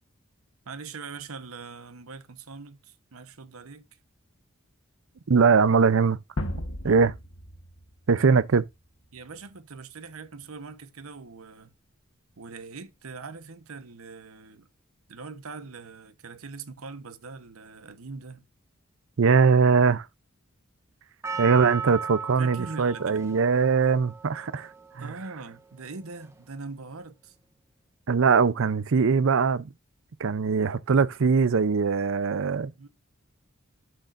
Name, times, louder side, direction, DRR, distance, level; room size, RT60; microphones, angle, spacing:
voice 1, 0.6-3.9 6.8-7.0 9.1-11.7 12.4-14.7 15.1-18.5 22.4-23.3 25.0-27.3 32.8-32.9, right 4 dB, 90° right, 1.0 m, -42 dB
voice 2, 5.3-6.2 6.8-7.1 8.1-8.6 19.2-20.1 21.4-24.7 25.0-25.1 28.1-29.7 30.2-32.7, right 5 dB, 65° right, 0.5 m, -21 dB
sound 1, 6.4-9.3, left 1 dB, 90° left, 1.4 m, -36 dB
Percussion, 21.2-25.6 26.2-26.3, right 5 dB, 15° right, 1.1 m, -36 dB
11.5 x 6.7 x 2.5 m
head